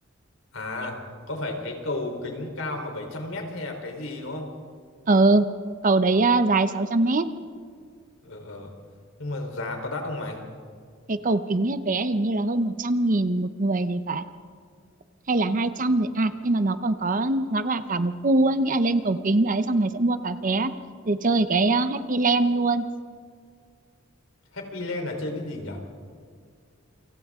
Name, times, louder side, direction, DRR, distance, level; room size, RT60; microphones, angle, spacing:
voice 1, 0.5-1.0 1.3-4.5 8.2-8.7 9.2-10.4 24.5-25.8, left 2 dB, 75° left, 3 dB, 3.8 m, -32 dB
voice 2, 5.1-5.5 5.8-7.3 11.1-14.2 15.3-20.7 21.1-22.9, right 2 dB, 40° right, 11 dB, 0.8 m, -22 dB
28.5 x 26.0 x 3.7 m, 2.1 s
head